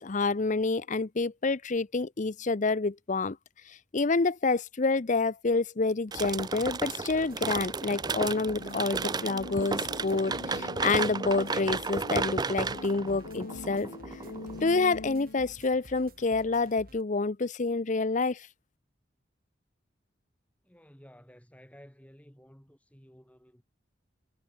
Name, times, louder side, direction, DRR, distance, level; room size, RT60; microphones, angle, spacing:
voice 1, 0.0-3.4 3.9-13.9 14.6-18.5, left 3 dB, 40° left, 0.7 m, -28 dB
sound 1, 6.1-14.8, right 4 dB, 20° right, 0.5 m, -33 dB
sound 2, 6.1-17.0, right 1 dB, 50° right, 7.3 m, -53 dB
sound 3, 8.3-15.6, left 3 dB, 90° left, 1.0 m, -43 dB
voice 2, 20.6-23.6, equal, 5° left, 5.7 m, -54 dB
head